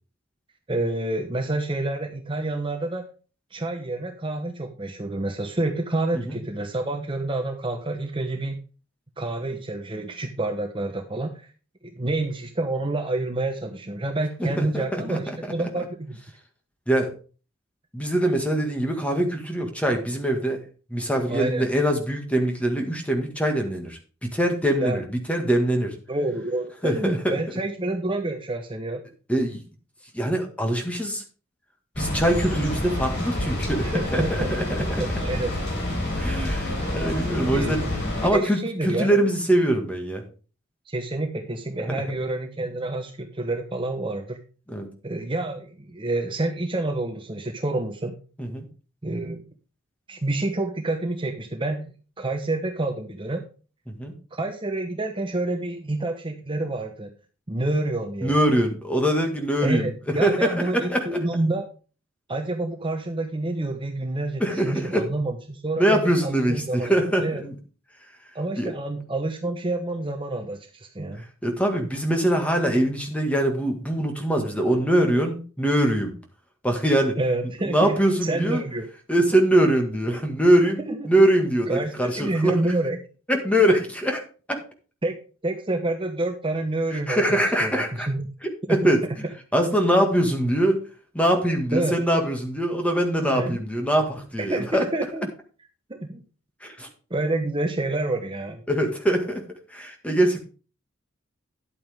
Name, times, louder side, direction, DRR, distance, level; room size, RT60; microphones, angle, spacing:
voice 1, 0.7-3.1 3.5-8.6 9.2-11.5 11.8-16.2 21.3-21.7 24.8-25.0 26.1-29.0 33.9-35.5 37.4-39.2 40.9-44.4 45.0-48.1 49.0-49.4 50.1-51.9 52.2-53.4 54.3-57.1 57.5-58.4 59.6-61.6 62.3-66.9 67.2-67.4 68.3-71.2 77.2-78.9 80.8-81.0 81.7-83.0 83.7-83.8 85.0-85.2 85.4-88.2 88.7-88.8 91.7-92.0 93.2-93.6 94.4-95.3 95.9-96.2 97.1-98.6, right 2 dB, 25° right, 5 dB, 1.0 m, -28 dB
voice 2, 14.4-15.4 16.9-17.1 17.9-20.6 20.9-25.9 26.8-27.3 29.3-29.6 30.1-31.2 32.0-34.6 36.2-37.9 38.2-40.2 41.9-42.0 44.7-44.9 48.4-48.7 53.9-54.1 58.2-61.2 64.4-65.1 65.8-67.6 68.6-68.7 71.4-76.1 76.6-77.2 77.7-78.6 79.1-82.5 83.3-84.2 84.5-84.6 86.9-88.1 88.7-89.0 89.5-90.8 91.1-94.9 96.6-96.9 98.7-99.4 99.7-100.4, right 1 dB, 5° left, 3 dB, 1.8 m, -23 dB
sound 1, 31.9-38.3, left 1 dB, 55° left, 4.3 m, -28 dB
11.0 x 8.5 x 3.5 m, 0.36 s
head